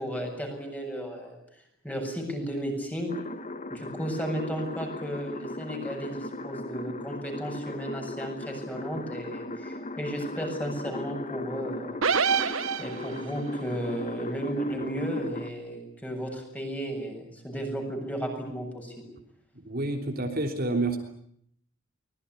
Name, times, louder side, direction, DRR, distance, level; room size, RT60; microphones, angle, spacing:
voice 1, 0.0-1.4 1.8-3.1 3.7-12.0 12.8-18.9, equal, 10° left, 3 dB, 7.4 m, -34 dB
sound 1, 3.1-15.5, left 2 dB, 35° left, 1.5 m, -38 dB
sound 2, 12.0-13.4, right 6 dB, 85° right, 1.3 m, -26 dB
voice 2, 19.5-21.0, right 2 dB, 50° right, 3 dB, 3.4 m, -29 dB
24.5 x 21.5 x 9.8 m, 0.69 s
head